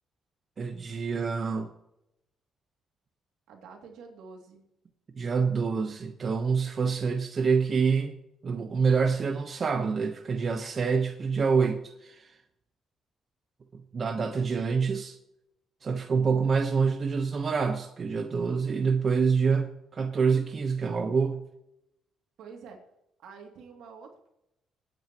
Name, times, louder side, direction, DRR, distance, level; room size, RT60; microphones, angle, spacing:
voice 1, 0.6-1.7 5.2-8.1 8.4-12.4 13.7-15.2 15.8-21.4, right 5 dB, 45° right, 1.0 m, -26 dB
voice 2, 3.5-4.6 22.4-22.8 23.2-24.3, right 5 dB, 85° right, 2.5 m, -47 dB
25.5 x 9.2 x 3.0 m
cardioid pair, 90°, 0 cm